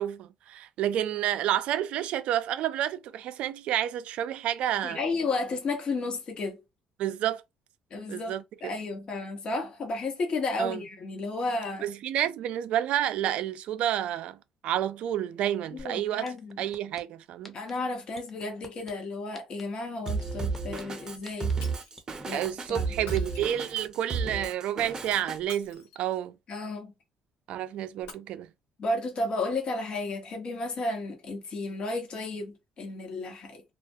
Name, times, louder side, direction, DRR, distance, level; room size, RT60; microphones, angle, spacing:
voice 1, 0.0-5.0 7.0-7.4 8.1-8.4 10.6-10.8 11.8-14.4 14.6-16.3 16.6-17.5 22.3-26.3 27.5-28.5, right 11 dB, 70° right, 0.3 m, -30 dB
voice 2, 4.8-6.6 7.9-8.4 8.6-11.9 15.7-16.6 17.5-21.5 22.2-22.9 26.5-26.9 28.8-33.6, left 2 dB, 50° left, 1.0 m, -33 dB
sound 1, 15.8-15.9 16.2-17.0 17.4-17.7 18.1-18.9 19.3-19.6 20.1-20.8 21.2-21.5 22.0-22.7 23.2-23.3, left 1 dB, 10° left, 0.7 m, -46 dB
Drum kit, 20.1-25.4, right 4 dB, 30° right, 0.6 m, -33 dB
Shatter, 21.6-22.0 23.0-24.0 25.3-26.3 28.0-28.1, left 4 dB, 90° left, 0.7 m, -48 dB
2.3 x 2.2 x 2.7 m
supercardioid pair, 85°, 2 cm